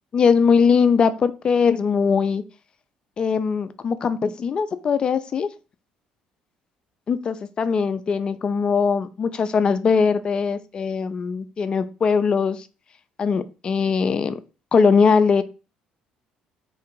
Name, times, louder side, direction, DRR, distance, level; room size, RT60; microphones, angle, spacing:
voice 1, 0.1-2.4 3.2-5.5 7.1-12.7 13.2-14.4 14.7-15.4, left 5 dB, 40° left, 12 dB, 0.4 m, -20 dB
3.8 x 2.4 x 4.5 m, 0.32 s
cardioid pair, 100°, 2 cm